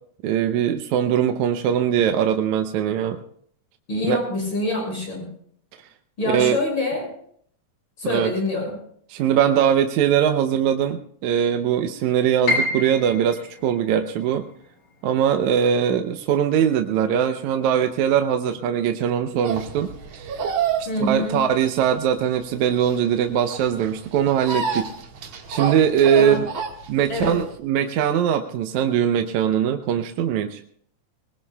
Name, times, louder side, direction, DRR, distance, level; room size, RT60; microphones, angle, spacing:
voice 1, 0.2-3.2 4.0-4.2 6.3-6.6 8.0-8.3 9.1-14.5 15.0-20.4 20.8-24.9 25.5-26.5 26.9-30.6, right 9 dB, 75° right, 6 dB, 2.0 m, -21 dB
voice 2, 3.9-5.3 6.2-7.1 8.0-8.8 20.9-21.4 26.1-26.4 27.1-27.4, left 1 dB, 40° left, -1 dB, 6.5 m, -25 dB
Piano, 12.5-18.4 18.7-19.9 20.3-20.4 21.1-21.4, left 2 dB, 90° left, 4.4 m, -31 dB
sound 1, 19.4-27.6, right 6 dB, 60° right, 2.6 m, -29 dB
21.5 x 21.0 x 2.3 m, 0.63 s
omnidirectional pair, 3.6 m